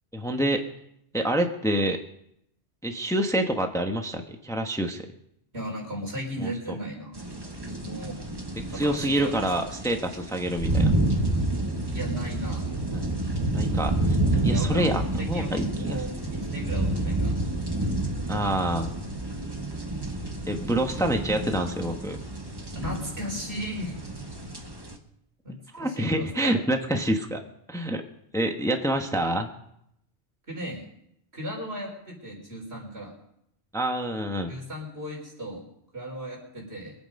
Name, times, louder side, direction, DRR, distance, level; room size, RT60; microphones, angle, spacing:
voice 1, 0.1-0.7 1.1-2.0 2.8-5.1 6.4-6.8 8.7-10.9 12.9-13.0 13.5-14.2 14.4-16.2 18.3-18.9 20.5-22.2 25.7-27.4 27.7-28.0 28.3-29.5 33.7-34.5, right 1 dB, 5° left, 4 dB, 1.1 m, -27 dB
voice 2, 5.5-7.1 7.8-8.2 8.7-9.4 11.9-12.6 14.5-14.9 15.2-17.3 18.2-18.7 22.7-24.0 25.4-25.5 25.8-26.5 30.5-30.8 31.3-33.1 34.5-35.7 35.9-36.9, equal, 75° right, 0 dB, 4.7 m, -36 dB
sound 1, 7.2-25.0, right 2 dB, 20° right, 1.4 m, -29 dB
24.5 x 8.5 x 5.3 m, 0.77 s
omnidirectional pair, 1.1 m